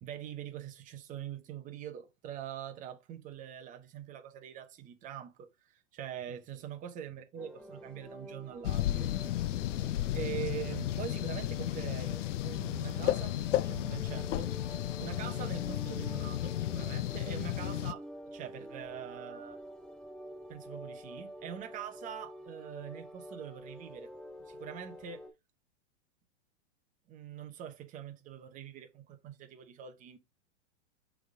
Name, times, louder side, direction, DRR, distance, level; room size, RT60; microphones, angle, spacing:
voice 1, 0.0-9.1 10.1-14.6 15.0-19.6 20.5-24.1 24.5-25.3 27.1-30.2, right 10 dB, 20° right, 0.9 m, -44 dB
sound 1, 7.4-25.3, equal, 5° left, 1.1 m, -48 dB
sound 2, 8.6-17.9, left 13 dB, 80° left, 0.5 m, -33 dB
6.2 x 3.6 x 4.9 m
hypercardioid pair, 145°, 37 cm